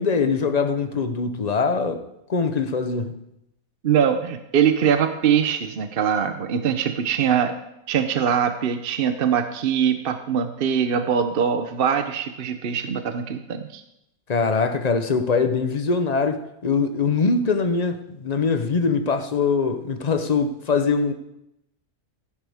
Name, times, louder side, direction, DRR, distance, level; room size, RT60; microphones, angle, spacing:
voice 1, 0.0-2.0 2.3-3.2 14.3-21.1, left 4 dB, 35° left, 0.7 m, -22 dB
voice 2, 3.8-7.5 7.9-13.8, right 8 dB, 50° right, 0.7 m, -22 dB
15.5 x 10.5 x 3.5 m
omnidirectional pair, 1.6 m